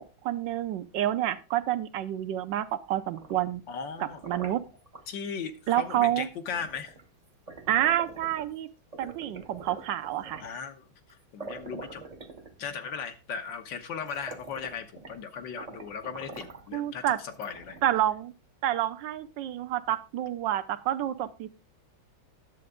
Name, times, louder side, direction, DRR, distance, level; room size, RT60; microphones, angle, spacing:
voice 1, 0.0-3.6 4.3-4.6 5.7-6.3 7.7-8.7 9.0-10.4 16.7-17.2 17.8-18.3 18.6-21.5, right 12 dB, 75° right, 11 dB, 1.3 m, -28 dB
sound 1, 3.0-5.1 5.9-6.1 6.5-8.6 8.9-10.6 11.1-11.2 11.4-12.9 13.6-13.7 14.0-15.3 15.6-16.7 17.3-18.1, right 3 dB, 30° right, 0.7 m, -45 dB
voice 2, 3.7-4.2 5.1-6.9 10.4-10.8 11.3-12.0 12.6-17.8, left 6 dB, 70° left, 7 dB, 1.7 m, -37 dB
10.5 x 7.7 x 3.6 m, 0.32 s
omnidirectional pair, 2.1 m